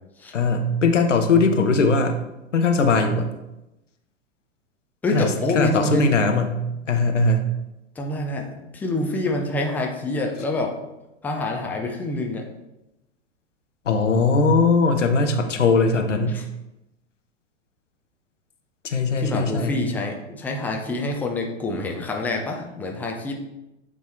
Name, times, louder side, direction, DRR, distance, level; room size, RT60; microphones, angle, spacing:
voice 1, 0.3-2.2 2.5-3.3 5.1-6.6 6.9-7.5 13.9-16.4 18.8-19.8, left 3 dB, 75° left, 5 dB, 0.9 m, -20 dB
voice 2, 5.0-6.2 8.0-10.8 11.2-12.5 16.3-16.4 19.2-23.3, left 2 dB, 5° left, 1 dB, 0.4 m, -26 dB
8.4 x 3.1 x 4.2 m, 0.95 s
figure-of-eight pair, 100°, 37 cm